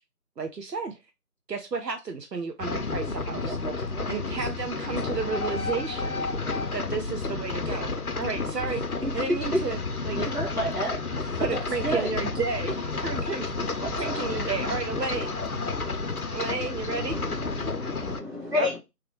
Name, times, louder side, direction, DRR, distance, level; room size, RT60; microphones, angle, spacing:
voice 1, 0.4-1.0 1.5-3.6 4.1-6.2 6.7-7.9 8.2-9.8 10.0-10.2 11.4-15.6 16.3-17.2 18.6-18.8, right 4 dB, 85° right, 0.7 m, -32 dB
sound 1, 2.6-18.2, left 3 dB, 65° left, 0.7 m, -31 dB
voice 2, 3.3-4.1 4.4-4.5 9.0-9.2 9.5-9.6 10.2-12.1 13.8-14.1, right 1 dB, 60° right, 2.0 m, -32 dB
voice 3, 16.9-18.8, left 3 dB, 40° right, 2.0 m, -31 dB
3.5 x 3.3 x 3.0 m
figure-of-eight pair, 170°, 47 cm